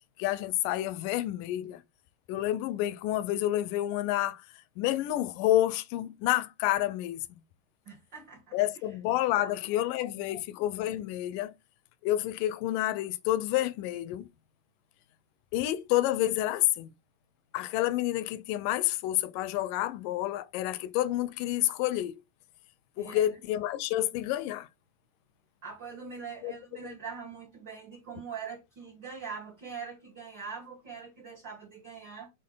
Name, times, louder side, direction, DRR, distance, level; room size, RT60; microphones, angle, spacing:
voice 1, 0.2-1.8 2.3-4.4 4.8-7.2 8.5-11.5 12.0-14.3 15.5-16.9 17.5-22.2 23.0-24.7 26.4-26.5 26.8-26.9, left 14 dB, 85° left, 2.2 m, -29 dB
voice 2, 7.8-8.6 9.4-10.4 23.0-23.3 25.6-32.3, right 6 dB, 45° right, 1.7 m, -43 dB
7.6 x 3.9 x 3.8 m
omnidirectional pair, 3.8 m